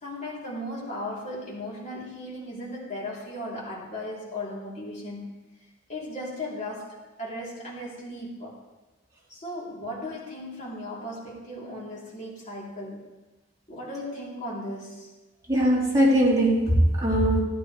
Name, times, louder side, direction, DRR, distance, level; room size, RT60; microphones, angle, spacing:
voice 1, 0.0-5.4 5.9-8.6 9.3-13.1 13.7-15.1, left 1 dB, 40° left, -5 dB, 3.1 m, -36 dB
voice 2, 15.5-17.4, right 1 dB, 20° right, -6 dB, 3.1 m, -20 dB
14.0 x 11.0 x 3.2 m, 1.2 s
head